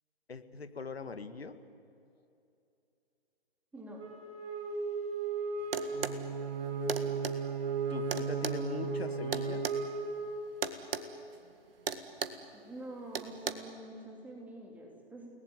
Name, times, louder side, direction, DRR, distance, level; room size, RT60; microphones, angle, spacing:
voice 1, 0.3-1.6 7.9-9.6, left 4 dB, 70° left, 10 dB, 2.0 m, -41 dB
voice 2, 3.7-4.0 12.5-15.3, right 1 dB, 5° right, -1 dB, 3.5 m, -46 dB
Wind instrument woodwind instrument, 4.0-10.8, right 3 dB, 30° right, 6.5 m, -37 dB
sound 1, 5.7-6.2 6.9-7.4 8.1-9.8 10.6-11.1 11.3-11.5 11.9-12.4 13.1-13.5, right 5 dB, 60° right, 1.8 m, -35 dB
Bowed string instrument, 5.9-10.1, right 9 dB, 45° right, 1.2 m, -38 dB
29.5 x 19.0 x 9.8 m, 2.7 s
figure-of-eight pair, 130°, 32 cm